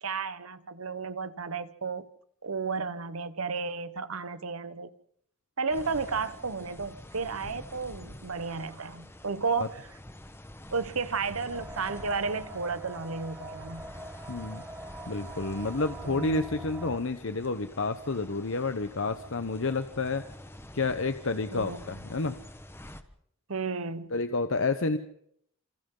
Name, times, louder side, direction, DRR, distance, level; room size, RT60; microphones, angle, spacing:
voice 1, 0.0-2.1 2.4-4.9 5.6-9.9 10.7-13.9 16.0-16.4 21.5-21.8 23.5-24.1, right 4 dB, 85° right, 1.2 m, -33 dB
sound 1, 5.7-23.0, left 1 dB, 10° left, 1.3 m, -48 dB
sound 2, 11.5-17.0, right 2 dB, 10° right, 1.5 m, -43 dB
voice 2, 14.3-14.6 15.1-20.2 20.7-22.4 24.1-25.0, left 3 dB, 65° left, 1.0 m, -30 dB
27.5 x 27.5 x 3.9 m
head